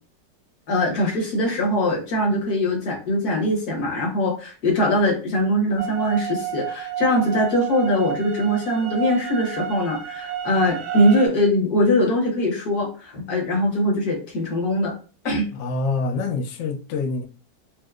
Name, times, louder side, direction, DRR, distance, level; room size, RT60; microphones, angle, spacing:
voice 1, 0.7-14.9 15.2-15.5, left 1 dB, 65° left, 1.6 m, -22 dB
sound 1, 5.8-11.3, right 9 dB, 90° right, 1.3 m, -30 dB
voice 2, 15.5-17.3, left 3 dB, 80° left, 0.6 m, -26 dB
4.4 x 2.1 x 2.3 m
omnidirectional pair, 1.9 m